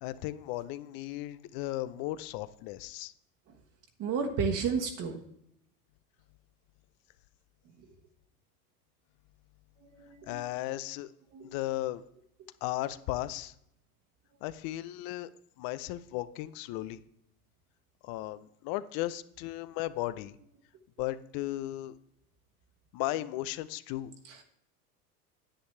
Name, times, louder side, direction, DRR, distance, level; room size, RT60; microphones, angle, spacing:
voice 1, 0.0-3.1 10.3-11.1 11.5-12.0 12.6-13.5 14.4-15.3 15.6-17.0 18.0-20.4 21.0-21.9 22.9-24.1, left 15 dB, 50° left, 16 dB, 0.6 m, -35 dB
voice 2, 4.0-5.2 10.0-10.4 11.3-11.5 24.3-24.4, right 5 dB, 45° right, 2 dB, 1.4 m, -32 dB
10.0 x 8.0 x 3.2 m, 0.74 s
hypercardioid pair, 95°, 45 cm